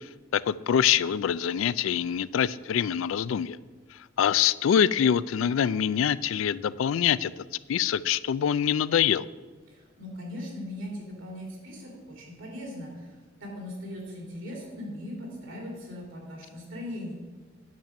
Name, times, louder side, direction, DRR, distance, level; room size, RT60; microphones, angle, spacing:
voice 1, 0.3-3.6 4.2-7.3 7.7-9.3, left 8 dB, 80° left, 18 dB, 0.3 m, -24 dB
voice 2, 9.7-17.1, left 1 dB, 85° right, -1 dB, 3.5 m, -39 dB
9.4 x 5.4 x 7.5 m, 1.3 s
head